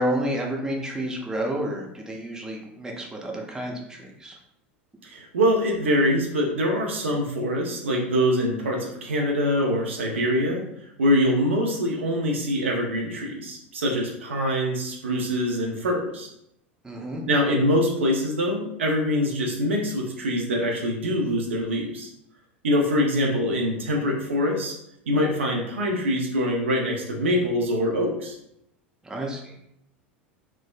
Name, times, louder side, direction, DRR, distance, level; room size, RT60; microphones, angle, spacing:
voice 1, 0.0-4.4 16.8-17.2 29.0-29.5, equal, 10° right, -1 dB, 0.6 m, -30 dB
voice 2, 5.1-10.6 11.0-16.3 17.3-22.1 22.6-24.7 25.1-28.4, equal, 75° right, 0 dB, 0.6 m, -24 dB
3.2 x 2.0 x 2.4 m, 0.78 s
figure-of-eight pair, 80°, 7 cm